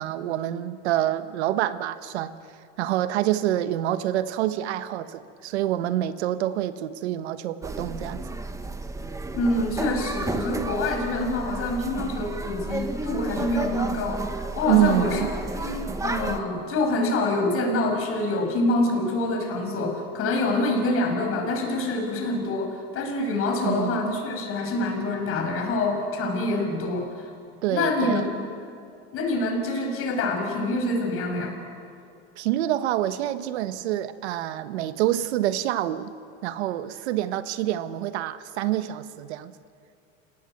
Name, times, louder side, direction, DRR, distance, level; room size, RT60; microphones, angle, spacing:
voice 1, 0.0-2.3 2.8-8.2 14.7-15.3 23.6-24.2 27.6-28.2 32.4-36.1 36.4-39.5, right 13 dB, 90° right, 11 dB, 1.4 m, -26 dB
sound 1, 7.6-16.4, right 3 dB, 10° right, 1.3 m, -32 dB
voice 2, 9.3-14.3 14.6-15.3 15.5-27.3 27.7-28.4 29.1-31.6, left 2 dB, 45° left, 3 dB, 6.2 m, -26 dB
30.0 x 18.0 x 8.0 m, 2.6 s
supercardioid pair, 130°, 32 cm